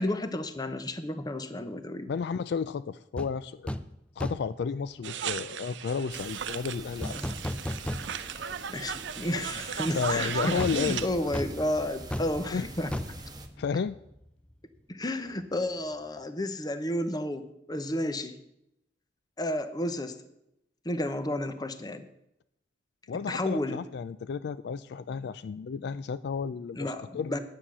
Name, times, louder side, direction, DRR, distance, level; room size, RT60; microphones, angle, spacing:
voice 1, 0.0-2.1 7.1-7.3 8.7-12.9 14.9-17.4 17.7-18.4 19.4-20.1 20.8-22.1 23.3-23.8 26.7-27.4, left 1 dB, 25° left, 10 dB, 0.8 m, -32 dB
voice 2, 2.1-3.7 4.2-7.2 9.9-11.4 12.5-12.7 13.6-14.0 23.1-27.3, left 6 dB, 65° left, 14 dB, 0.3 m, -32 dB
sound 1, 3.2-3.3 3.7-3.9 4.2-4.6 7.0-8.4 8.8-8.9 10.6-14.2 14.5-14.7, left 1 dB, 5° left, 0.5 m, -35 dB
sound 2, 5.0-11.1, right 8 dB, 80° right, 0.6 m, -36 dB
sound 3, 6.1-13.5, right 2 dB, 25° right, 1.2 m, -46 dB
9.8 x 8.5 x 6.1 m, 0.83 s
head